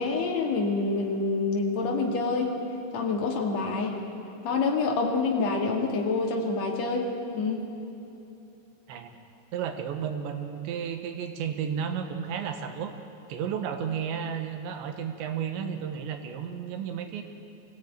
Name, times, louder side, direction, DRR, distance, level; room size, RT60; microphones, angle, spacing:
voice 1, 0.0-2.5 2.9-4.0 4.4-7.1 7.3-7.7, left 3 dB, 45° left, 0 dB, 3.0 m, -27 dB
voice 2, 9.5-12.9 13.3-17.2, right 7 dB, 85° right, 6 dB, 3.6 m, -32 dB
24.0 x 16.0 x 9.3 m, 2.9 s
omnidirectional pair, 5.0 m